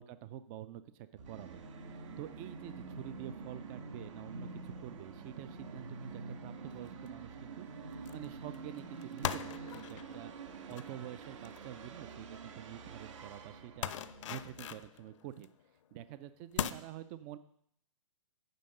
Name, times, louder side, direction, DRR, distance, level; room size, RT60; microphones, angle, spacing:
voice 1, 0.0-10.3 10.7-15.5 15.9-17.4, right 11 dB, 30° right, 14 dB, 0.3 m, -48 dB
Musical instrument, 1.2-14.9, right 4 dB, 65° right, 1.3 m, -47 dB
sound 1, 6.1-6.3 6.8-7.1 8.1-8.3 8.5-12.4 12.7-12.8 13.1-13.3 13.8-15.6 16.0-16.1 16.6-16.7, left 10 dB, 60° left, 0.5 m, -41 dB
9.2 x 4.5 x 6.5 m, 0.69 s
hypercardioid pair, 135°, 17 cm